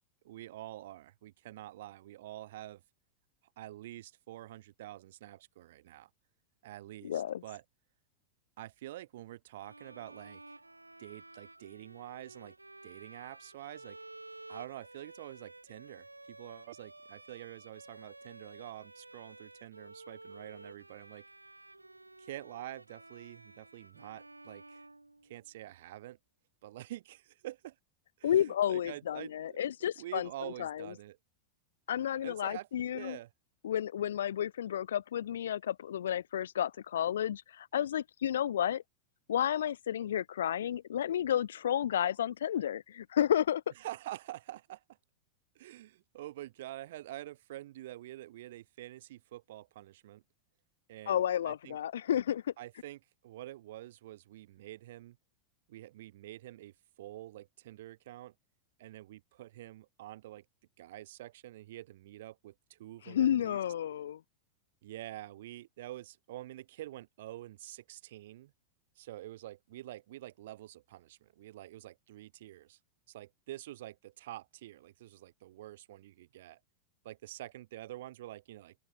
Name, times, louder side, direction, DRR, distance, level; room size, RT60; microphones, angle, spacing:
voice 1, 0.2-2.8 3.6-6.1 6.6-7.6 8.6-10.4 11.0-12.5 12.8-14.0 14.5-21.2 22.2-24.8 25.2-26.2 26.6-27.8 28.2-29.6 30.0-31.2 32.2-32.7 32.9-33.3 43.8-44.8 45.5-50.2 50.9-51.8 52.6-55.2 55.7-58.3 58.8-60.4 60.8-63.6 64.8-68.5 69.0-72.8 73.1-76.6 77.0-78.7, right 15 dB, 55° right, 0.8 m, -47 dB
voice 2, 7.0-7.4 28.2-30.3 30.6-30.9 31.9-33.2 33.6-38.8 39.3-43.6 51.1-52.4 63.1-64.2, left 10 dB, 65° left, 0.3 m, -31 dB
Bowed string instrument, 9.6-25.6, right 2 dB, 85° right, 1.4 m, -53 dB
open air
figure-of-eight pair, 90°, 0 cm